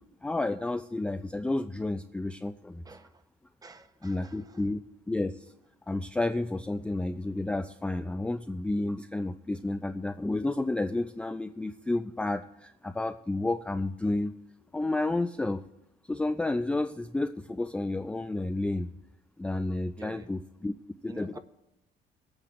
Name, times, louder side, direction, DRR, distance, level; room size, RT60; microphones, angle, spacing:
voice 1, 0.2-2.8 4.0-4.8 5.1-5.4 5.9-14.3 14.7-15.6 16.1-18.9 19.4-20.7 21.0-21.4, left 2 dB, 5° left, 7 dB, 0.3 m, -31 dB
voice 2, 3.6-4.6 20.0-20.3 21.1-21.4, right 3 dB, 20° right, 10 dB, 0.8 m, -48 dB
24.0 x 8.9 x 2.5 m, 0.89 s
cardioid pair, 110°, 17 cm